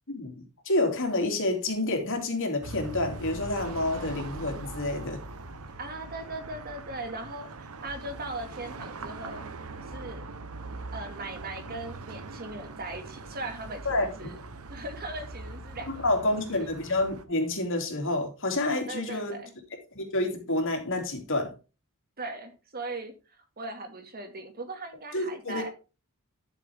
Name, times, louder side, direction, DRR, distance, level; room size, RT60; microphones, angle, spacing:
voice 1, 0.1-5.2 13.8-14.1 16.0-19.4 19.9-21.5 25.1-25.7, left 2 dB, 60° left, 3.0 m, -28 dB
sound 1, 2.6-17.2, right 2 dB, 70° right, 1.1 m, -41 dB
voice 2, 5.8-9.4 9.9-10.3 10.9-14.4 14.7-16.7 18.9-19.5 22.2-25.7, right 2 dB, 45° right, 2.1 m, -39 dB
12.0 x 6.9 x 3.6 m
head